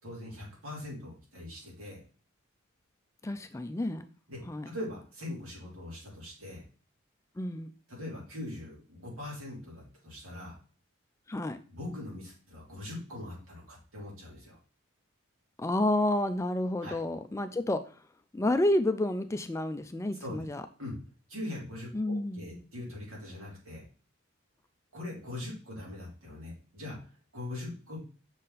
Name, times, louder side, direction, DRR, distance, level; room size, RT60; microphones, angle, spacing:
voice 1, 0.0-2.0 4.3-6.6 7.9-10.6 11.7-14.6 16.8-17.0 20.2-20.4 20.8-21.0 21.3-23.8 24.9-28.0, left 1 dB, 80° right, -3 dB, 3.2 m, -41 dB
voice 2, 3.2-4.1 4.5-4.7 7.4-7.7 11.3-11.6 15.6-17.8 18.3-20.6 21.9-22.6, left 1 dB, 15° left, 10 dB, 0.3 m, -30 dB
6.3 x 4.1 x 4.0 m, 0.38 s
head